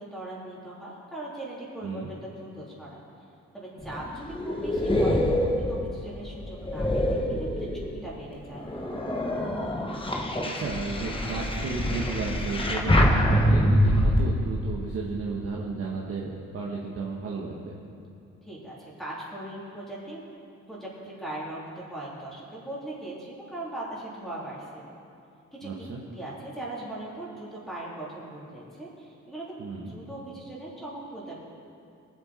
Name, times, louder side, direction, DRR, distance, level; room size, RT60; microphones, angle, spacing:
voice 1, 0.0-3.0 3.5-8.6 18.5-20.2 20.7-24.9 25.5-25.7 26.1-29.5 29.9-31.4, right 1 dB, ahead, -8 dB, 3.6 m, -39 dB
sound 1, 3.8-8.0 8.5-14.2, equal, 15° left, 1.4 m, -25 dB
voice 2, 10.5-17.8 25.6-26.0 29.6-29.9, right 4 dB, 50° right, -4 dB, 1.6 m, -33 dB
19.0 x 8.1 x 4.4 m, 2.6 s
cardioid pair, 90°, 30 cm